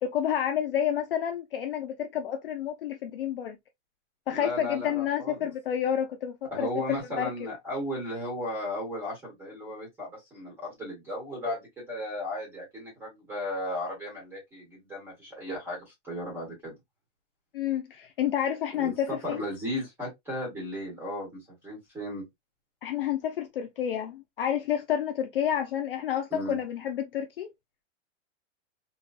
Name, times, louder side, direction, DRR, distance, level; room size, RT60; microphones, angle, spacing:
voice 1, 0.0-3.6 4.3-7.3 17.5-19.4 22.8-27.5, left 9 dB, 50° left, 0.5 m, -29 dB
voice 2, 4.3-5.5 6.5-16.7 18.8-22.2 26.3-26.6, left 1 dB, 5° right, 1.1 m, -35 dB
4.0 x 2.2 x 2.3 m
supercardioid pair, 175°, 38 cm